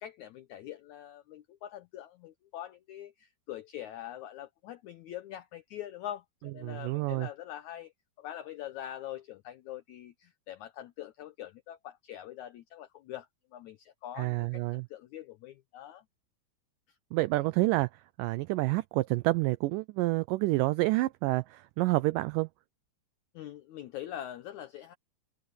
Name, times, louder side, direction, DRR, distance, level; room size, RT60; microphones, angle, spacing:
voice 1, 0.0-7.9 8.2-16.0 23.3-25.0, left 12 dB, 85° left, 1.7 m, -44 dB
voice 2, 6.6-7.3 14.2-14.9 17.1-22.5, right 20 dB, 90° right, 1.9 m, -28 dB
omnidirectional pair, 4.4 m